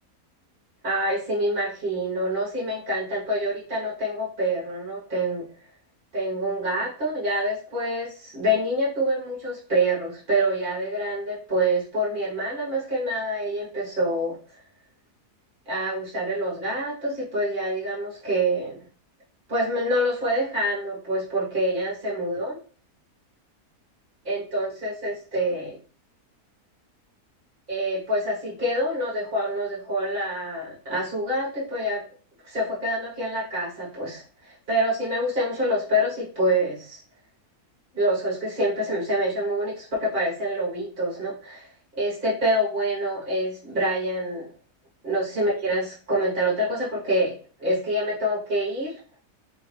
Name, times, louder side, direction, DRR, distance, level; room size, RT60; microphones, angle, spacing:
voice 1, 0.8-5.5 6.1-14.4 15.7-18.8 19.5-22.6 24.2-25.8 27.7-32.0 32.5-37.0 37.9-41.7 41.9-44.5 45.0-48.9, right 1 dB, 35° right, -6 dB, 1.5 m, -26 dB
4.3 x 2.8 x 3.3 m, 0.39 s
omnidirectional pair, 1.6 m